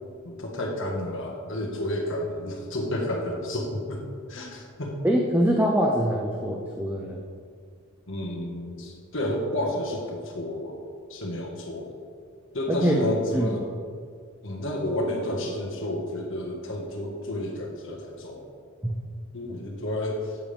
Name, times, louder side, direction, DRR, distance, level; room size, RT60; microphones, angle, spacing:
voice 1, 0.2-4.0 4.3-4.9 8.1-10.8 11.1-11.9 12.5-13.7 14.4-18.5 19.3-20.4, left 1 dB, 60° left, 0 dB, 1.6 m, -31 dB
voice 2, 5.0-7.2 12.7-13.0 13.3-13.6 18.8-19.0, equal, 10° right, -1 dB, 0.7 m, -24 dB
13.0 x 8.7 x 3.5 m, 2.2 s
head